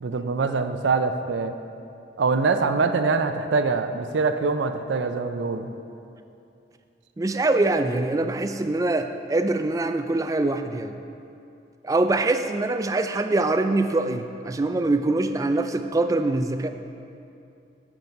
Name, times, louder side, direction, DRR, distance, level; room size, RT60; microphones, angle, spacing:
voice 1, 0.0-1.5 2.2-5.7, right 4 dB, 90° right, 8 dB, 0.5 m, -24 dB
voice 2, 7.2-11.0 11.8-16.7, right 2 dB, 20° right, 8 dB, 0.3 m, -24 dB
9.0 x 5.9 x 5.3 m, 2.7 s
head